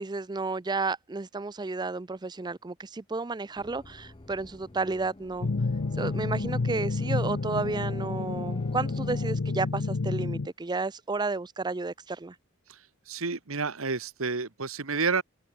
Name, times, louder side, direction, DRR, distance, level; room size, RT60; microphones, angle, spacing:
voice 1, 0.0-5.5 6.0-12.4, right 3 dB, 20° right, 0.4 m, -32 dB
sound 1, 3.6-9.3, left 2 dB, 25° left, 0.7 m, -49 dB
sound 2, 5.4-10.5, left 3 dB, 60° left, 0.7 m, -30 dB
voice 2, 12.7-15.2, right 4 dB, 70° right, 1.5 m, -30 dB
open air
head